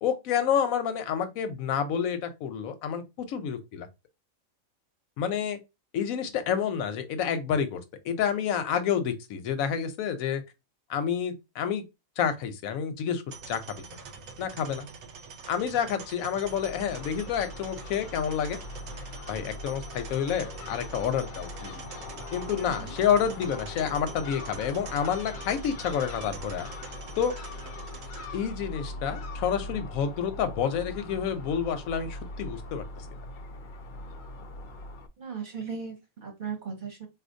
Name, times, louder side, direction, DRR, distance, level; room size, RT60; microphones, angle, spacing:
voice 1, 0.0-3.9 5.2-5.6 5.9-10.4 10.9-11.8 12.2-13.2 13.5-13.8 14.4-14.9 15.5-18.6 19.3-21.7 22.3-26.7 27.2-27.4 28.3-32.8, left 8 dB, 85° left, 1.0 m, -29 dB
sound 1, 13.3-28.3, right 5 dB, 75° right, 1.0 m, -45 dB
Crow / Gull seagull, 16.4-35.1, left 2 dB, 70° left, 0.4 m, -41 dB
voice 2, 22.6-23.0 35.2-37.1, right 6 dB, 40° right, 0.9 m, -37 dB
4.0 x 2.4 x 2.6 m
omnidirectional pair, 1.4 m